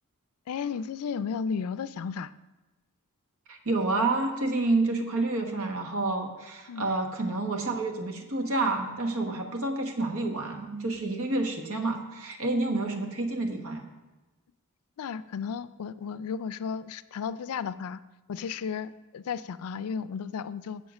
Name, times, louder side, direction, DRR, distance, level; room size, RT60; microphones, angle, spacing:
voice 1, 0.5-2.3 6.7-6.8 15.0-18.0 18.3-20.8, left 6 dB, 70° left, 15 dB, 0.4 m, -34 dB
voice 2, 3.5-13.8, right 2 dB, 70° right, 4 dB, 1.2 m, -29 dB
7.6 x 7.2 x 6.2 m, 1.1 s
head